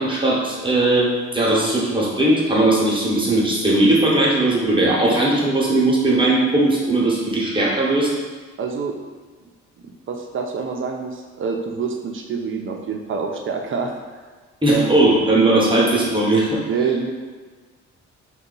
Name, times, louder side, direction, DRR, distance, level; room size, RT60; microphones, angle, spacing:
voice 1, 0.0-8.1 14.6-16.6, right 2 dB, 15° right, -4 dB, 0.9 m, -18 dB
voice 2, 8.6-8.9 9.8-14.0 14.7-15.0 16.2-16.3 16.7-17.1, right 5 dB, 45° right, 3 dB, 0.5 m, -26 dB
2.7 x 2.3 x 3.8 m, 1.5 s
cardioid pair, 90°, 30 cm